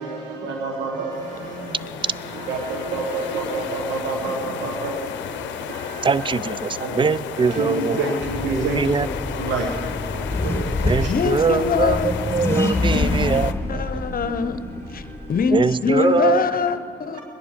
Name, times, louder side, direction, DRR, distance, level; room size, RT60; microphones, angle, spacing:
voice 1, 0.0-11.1 13.2-13.3 13.7-14.0 14.7-15.4 16.2-16.4 17.1-17.2, right 3 dB, 85° right, 1 dB, 1.3 m, -30 dB
sound 1, 1.1-13.5, left 9 dB, 85° left, 0.6 m, -33 dB
voice 2, 1.4-2.0 4.2-4.3 11.1-12.1 12.8-13.1 13.7-14.6 14.9-15.0 15.3-17.2, left 6 dB, 50° left, 11 dB, 0.8 m, -24 dB
voice 3, 6.0-8.0 8.5-9.1 10.9-13.8 15.5-16.5, right 5 dB, 25° right, 19 dB, 0.4 m, -22 dB
Accelerating revving vroom, 8.2-15.6, left 2 dB, 15° left, 1.8 m, -27 dB
22.0 x 10.5 x 5.1 m, 2.8 s
supercardioid pair, 60°, 18 cm